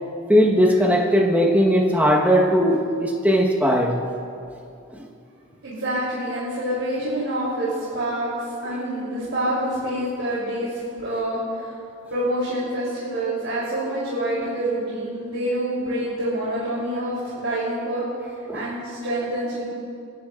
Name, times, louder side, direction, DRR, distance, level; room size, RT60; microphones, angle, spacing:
voice 1, 0.3-4.0 4.9-5.0 18.5-18.7, equal, 10° right, -1 dB, 1.2 m, -18 dB
voice 2, 5.6-11.7 12.1-18.0 18.5-19.6, right 1 dB, 75° right, -8 dB, 3.2 m, -27 dB
27.5 x 11.0 x 2.5 m, 2.5 s
head